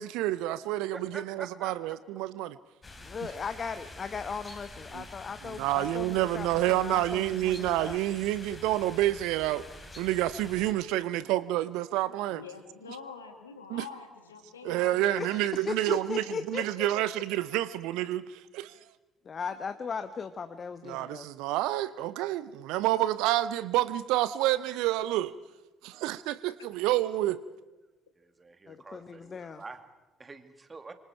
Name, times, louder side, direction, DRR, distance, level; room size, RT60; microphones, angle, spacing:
voice 1, 0.0-2.6 4.9-5.0 5.6-9.6 10.0-12.4 13.7-13.9 14.6-18.7 20.8-25.3 25.8-27.4, right 14 dB, 60° right, 17 dB, 0.6 m, -29 dB
voice 2, 0.9-1.7 28.1-29.8 30.2-30.9, right 3 dB, 25° right, 8 dB, 2.4 m, -46 dB
sound 1, 2.8-10.7, left 2 dB, 20° left, 3.5 m, -47 dB
voice 3, 3.0-8.0 15.2-17.0 19.2-21.3 28.7-29.6, left 5 dB, 35° left, 10 dB, 1.1 m, -37 dB
voice 4, 12.3-15.0, left 5 dB, 80° left, 6 dB, 2.3 m, -45 dB
27.0 x 25.5 x 4.5 m, 1.1 s
figure-of-eight pair, 50°, 0 cm